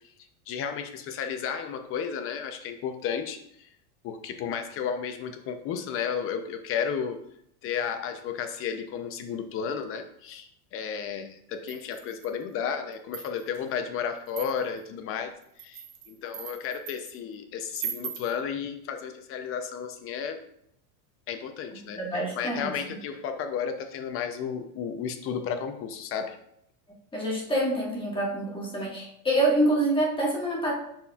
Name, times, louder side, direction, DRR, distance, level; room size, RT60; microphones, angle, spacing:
voice 1, 0.5-3.7 4.0-7.2 7.6-15.3 15.6-20.4 21.3-26.4, left 7 dB, 30° left, 7 dB, 0.6 m, -33 dB
sound 1, 11.7-12.4 12.9-13.6 14.3-14.8 15.4-17.1 17.7-18.3, right 8 dB, 80° right, 1.2 m, -39 dB
voice 2, 22.0-23.0 27.1-30.7, right 1 dB, 10° left, -4 dB, 1.5 m, -26 dB
10.5 x 4.4 x 2.3 m, 0.73 s
supercardioid pair, 135°, 45 cm